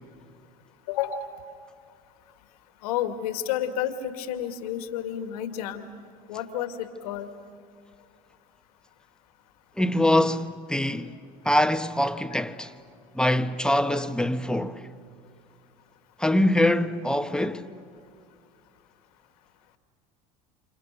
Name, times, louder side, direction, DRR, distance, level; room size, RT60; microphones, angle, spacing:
voice 1, 0.9-1.3 2.8-5.9 6.3-7.3, left 10 dB, 75° left, 2.2 m, -30 dB
voice 2, 9.8-11.1 11.4-12.7 13.1-14.8 16.2-17.6, left 1 dB, 5° left, 1.3 m, -24 dB
29.0 x 28.0 x 6.8 m
hypercardioid pair, 75°, 19 cm